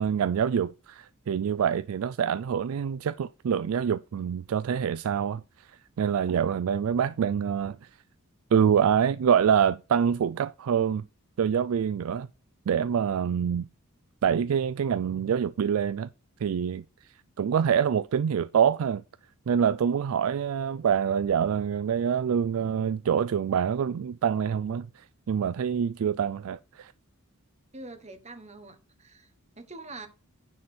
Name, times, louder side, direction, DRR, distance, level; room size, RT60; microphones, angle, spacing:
voice 1, 0.0-5.7 6.0-7.9 8.5-11.1 11.4-12.3 12.7-13.7 14.2-16.1 16.4-16.8 17.4-19.0 19.5-26.9, right 8 dB, 70° right, 0.3 m, -26 dB
voice 2, 27.7-30.1, right 2 dB, 30° right, 1.3 m, -45 dB
9.7 x 4.2 x 6.0 m
head